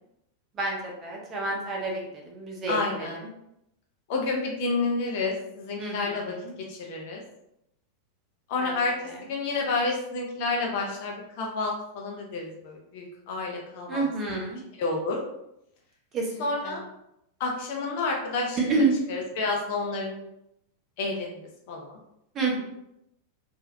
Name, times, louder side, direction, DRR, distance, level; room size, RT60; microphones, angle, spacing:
voice 1, 0.5-3.3 5.8-6.5 8.6-8.8 9.0-9.2 13.9-14.6 16.1-16.8 18.6-19.0 22.3-22.6, right 3 dB, 25° right, -1 dB, 1.0 m, -29 dB
voice 2, 2.7-3.2 4.1-6.3 6.7-7.2 8.5-8.9 9.3-14.0 14.8-15.2 16.4-16.8 17.4-20.2 21.0-21.4 21.7-22.0, left 3 dB, 50° left, 0 dB, 0.8 m, -30 dB
3.8 x 2.7 x 2.7 m, 0.81 s
figure-of-eight pair, 90°, 0 cm